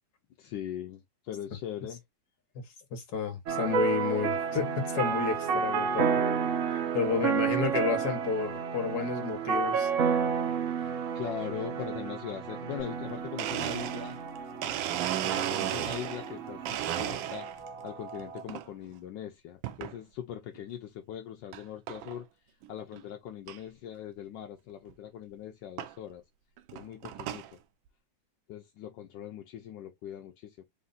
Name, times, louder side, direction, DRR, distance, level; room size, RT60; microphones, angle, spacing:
voice 1, 0.4-2.0 11.1-14.2 15.2-22.2 22.7-26.2 26.7-27.4 28.5-30.6, left 10 dB, 75° left, 1.3 m, -41 dB
voice 2, 2.9-6.2 6.6-9.9 10.8-10.9, left 5 dB, 55° left, 1.7 m, -31 dB
sound 1, 3.5-18.4, right 6 dB, 60° right, 0.8 m, -31 dB
sound 2, 12.8-19.2, right 2 dB, 45° right, 2.1 m, -52 dB
Domestic sounds home sounds, 13.0-13.1 13.4-16.3 16.7-17.7 18.2-18.7 19.6-20.0 20.6-20.7 21.5-21.6 21.9-22.2 22.6-22.7 22.9-23.0 23.5-23.6 24.9-25.0 25.8-25.9 26.6-27.5, right 12 dB, 85° right, 1.4 m, -34 dB
4.2 x 2.6 x 3.8 m
omnidirectional pair, 2.1 m